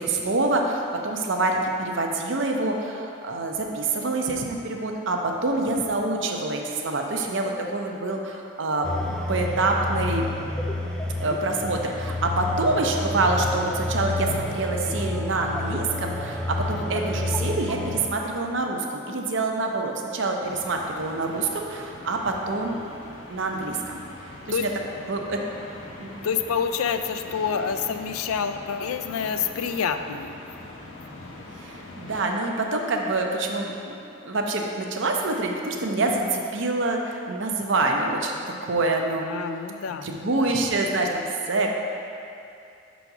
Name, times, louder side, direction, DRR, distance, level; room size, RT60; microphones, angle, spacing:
voice 1, 0.0-8.9 9.3-10.3 11.2-22.8 23.3-24.0 24.6-24.7 25.1-25.4 26.0-26.3 31.6-33.9 34.2-39.3 40.0-41.7, right 2 dB, 55° right, 1 dB, 0.6 m, -26 dB
sound 1, 8.8-18.1, left 2 dB, 5° left, 0.3 m, -29 dB
voice 2, 16.7-17.0 24.5-24.6 26.2-30.3 39.2-40.5, left 6 dB, 75° left, 8 dB, 0.3 m, -28 dB
sound 2, 20.4-32.2, left 2 dB, 60° left, 0.8 m, -43 dB
5.8 x 4.1 x 5.8 m, 2.6 s
head